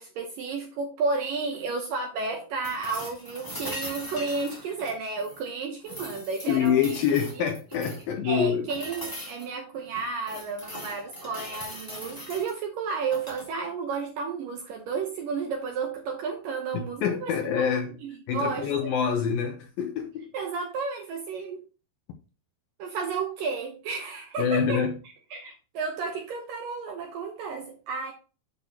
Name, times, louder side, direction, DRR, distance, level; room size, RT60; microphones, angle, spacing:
voice 1, 0.0-7.0 7.4-7.5 8.2-17.3 17.6-17.7 18.0-18.9 20.3-21.6 22.8-24.8 25.3-28.1, right 4 dB, 75° right, 2.1 m, -32 dB
sound 1, 2.6-5.5 5.8-8.1 8.7-9.5 9.9-12.5 13.0-13.5 15.5-15.6, equal, 5° left, 1.9 m, -40 dB
voice 2, 6.5-8.7 16.7-17.9 18.3-20.3 24.4-25.0, left 7 dB, 70° left, 2.3 m, -26 dB
8.3 x 6.6 x 2.8 m
omnidirectional pair, 5.0 m